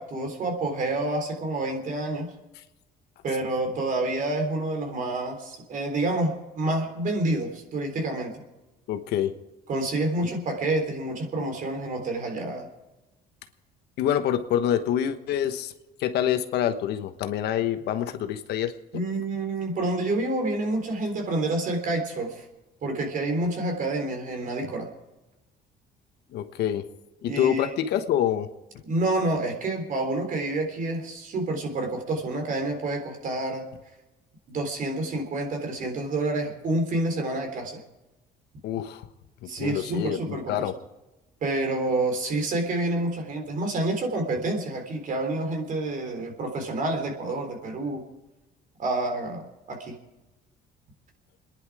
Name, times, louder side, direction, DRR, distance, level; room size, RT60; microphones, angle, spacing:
voice 1, 0.0-2.3 3.2-8.4 9.7-12.7 18.9-22.5 22.8-24.9 27.3-27.7 28.8-33.7 34.5-37.8 39.5-40.7 41.4-48.0 48.8-50.0, right 2 dB, 50° right, 3 dB, 3.7 m, -28 dB
voice 2, 8.9-9.3 14.0-15.7 16.0-18.7 26.3-26.8 27.2-28.5 38.6-39.0 39.4-40.7, left 10 dB, 75° left, 9 dB, 1.2 m, -26 dB
26.5 x 10.5 x 4.9 m, 1.0 s
cardioid pair, 110°, 17 cm